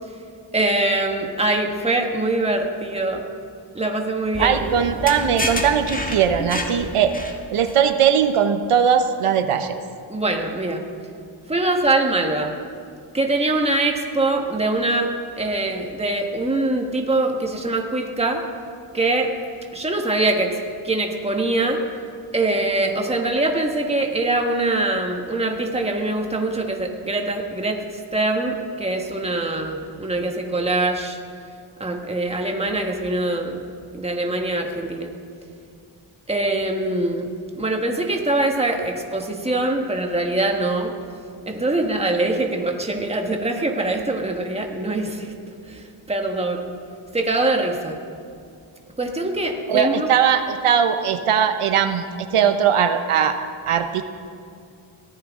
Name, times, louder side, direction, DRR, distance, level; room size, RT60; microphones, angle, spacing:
voice 1, 0.5-3.2 3.7-4.7 10.1-10.8 11.5-12.5 13.1-15.1 15.4-18.4 18.9-19.3 19.7-20.6 20.8-21.8 22.3-27.8 28.1-31.2 31.8-33.6 33.9-35.1 36.3-40.9 41.5-45.3 45.7-46.7 47.1-48.0 49.0-50.1, right 2 dB, 10° right, 2 dB, 1.5 m, -23 dB
sound 1, 4.3-7.7, left 1 dB, 15° left, 1.5 m, -29 dB
voice 2, 4.4-7.2 7.5-9.8 49.7-53.4 53.7-54.0, right 8 dB, 90° right, 8 dB, 0.9 m, -19 dB
22.0 x 15.0 x 3.7 m, 2.4 s
wide cardioid pair, 115°, 49 cm